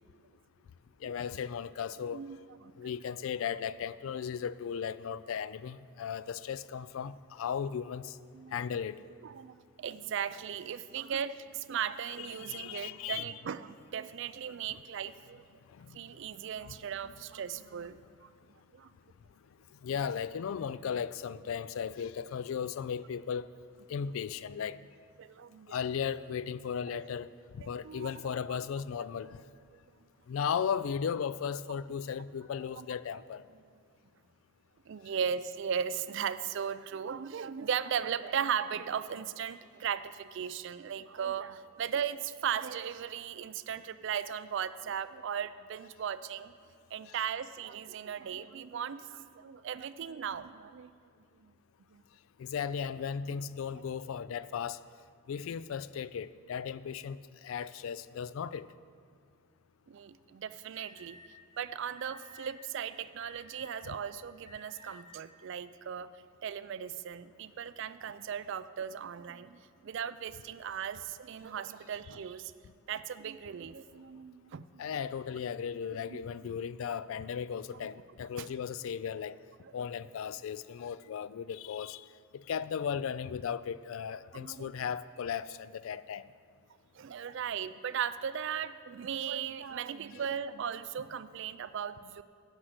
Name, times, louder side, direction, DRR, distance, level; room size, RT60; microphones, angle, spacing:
voice 1, 1.0-2.2 2.8-8.2 8.5-9.0 12.3-13.2 15.8-16.0 16.6-16.8 19.8-23.5 23.9-24.8 25.7-29.4 30.3-33.4 47.1-47.2 52.4-54.8 55.3-58.7 74.8-79.4 79.7-82.0 82.3-86.3, left 7 dB, 65° left, 17 dB, 0.3 m, -36 dB
voice 2, 2.1-2.9 8.3-8.5 9.2-15.4 15.9-18.3 18.7-18.9 25.2-25.7 26.9-27.0 27.6-28.6 32.8-32.9 34.9-46.5 46.9-50.9 51.4-51.5 51.9-52.0 53.7-53.8 59.9-61.2 61.6-66.1 66.4-72.5 72.9-74.8 76.1-76.2 78.4-78.5 84.3-84.7 86.9-92.2, right 8 dB, 55° right, 14 dB, 0.3 m, -37 dB
Alarm, 60.7-61.3 62.0-62.5 63.2-63.9 64.4-65.0, left 2 dB, 25° left, 2.1 m, -53 dB
9.9 x 6.3 x 8.0 m, 2.2 s
head